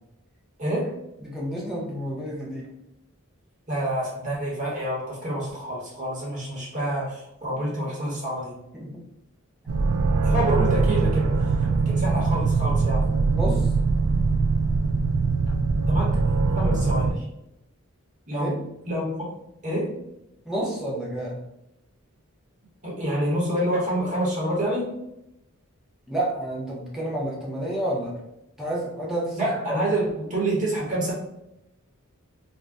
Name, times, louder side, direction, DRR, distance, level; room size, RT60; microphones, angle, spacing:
voice 1, 0.6-1.0 3.7-8.6 10.2-13.0 15.9-16.2 16.5-17.2 18.3-18.5 18.9-19.1 19.6-20.0 22.8-24.9 29.4-31.1, right 1 dB, 35° right, -5 dB, 0.9 m, -27 dB
voice 2, 1.2-2.7 7.5-7.6 8.7-9.0 13.3-13.7 18.3-18.6 20.5-21.4 26.1-28.2 28.6-29.8, right 1 dB, ahead, -5 dB, 0.6 m, -30 dB
sound 1, 9.7-17.1, right 4 dB, 75° right, 0.3 m, -22 dB
2.6 x 2.1 x 3.4 m, 0.86 s
head